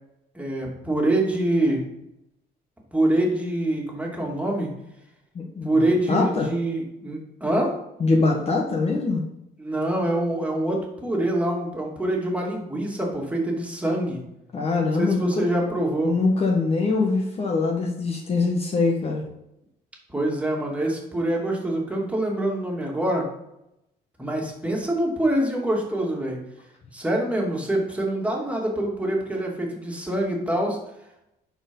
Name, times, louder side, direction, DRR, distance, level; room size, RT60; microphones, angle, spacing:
voice 1, 0.3-1.8 2.9-4.7 5.6-7.7 9.6-14.2 15.0-16.2 20.1-23.3 24.2-26.4 26.9-30.8, right 1 dB, 10° right, -2 dB, 2.6 m, -25 dB
voice 2, 5.3-6.5 8.0-9.2 14.5-15.5 16.0-19.2, left 3 dB, 35° left, 0 dB, 1.5 m, -23 dB
11.0 x 4.7 x 5.4 m, 0.84 s
cardioid pair, 110°, 17 cm